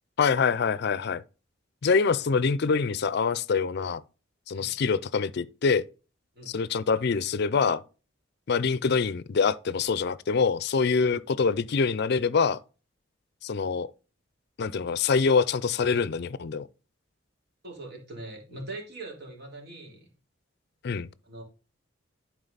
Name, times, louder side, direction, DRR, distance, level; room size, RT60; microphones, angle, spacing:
voice 1, 0.2-1.2 1.8-4.0 4.5-5.9 6.5-7.8 8.5-12.6 13.4-13.9 14.6-16.7 20.8-21.1, left 5 dB, 60° left, 0.5 m, -25 dB
voice 2, 17.6-20.1 21.3-21.4, right 2 dB, 55° right, 3.6 m, -41 dB
11.0 x 4.7 x 4.0 m
head